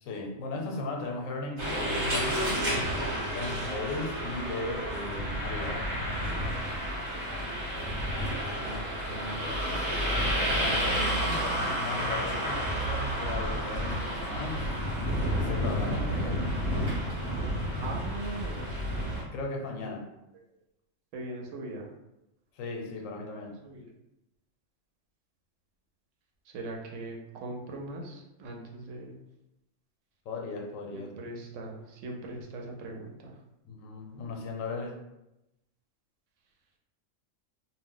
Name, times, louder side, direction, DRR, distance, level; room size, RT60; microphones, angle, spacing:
voice 1, 0.0-2.7 3.3-5.9 10.5-14.6 15.3-16.5 19.3-20.0 22.5-23.6 30.3-31.1 33.7-35.0, left 3 dB, 85° left, 1 dB, 1.0 m, -37 dB
sound 1, 1.6-19.2, equal, 40° right, 0.9 m, -30 dB
voice 2, 8.6-10.0 17.8-18.7 19.8-19.9 21.1-21.9 23.6-23.9 26.5-29.2 30.9-33.3, right 2 dB, 80° right, 0 dB, 0.9 m, -40 dB
2.3 x 2.0 x 3.7 m, 0.92 s
omnidirectional pair, 1.3 m